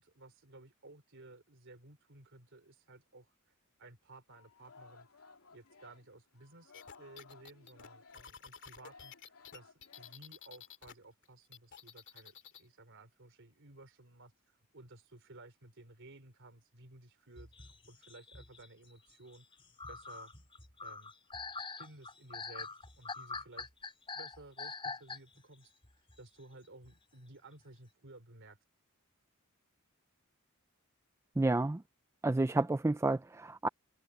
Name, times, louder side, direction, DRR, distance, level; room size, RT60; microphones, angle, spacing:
voice 1, 0.0-3.5 3.8-5.1 5.5-19.5 19.9-20.3 20.8-21.1 21.8-22.7 23.0-25.7 26.2-28.6, right 2 dB, 60° right, 3.6 m, -56 dB
Singing, 4.3-10.7, left 4 dB, 85° left, 2.9 m, -60 dB
sound 1, 6.7-10.9 11.2-12.7, left 7 dB, 60° left, 2.5 m, -52 dB
sound 2, 17.4-25.5 25.8-26.2 26.8-26.9 27.4-27.6, left 4 dB, 25° left, 3.6 m, -45 dB
voice 2, 31.4-31.8 32.2-33.7, right 2 dB, 15° right, 0.3 m, -30 dB
head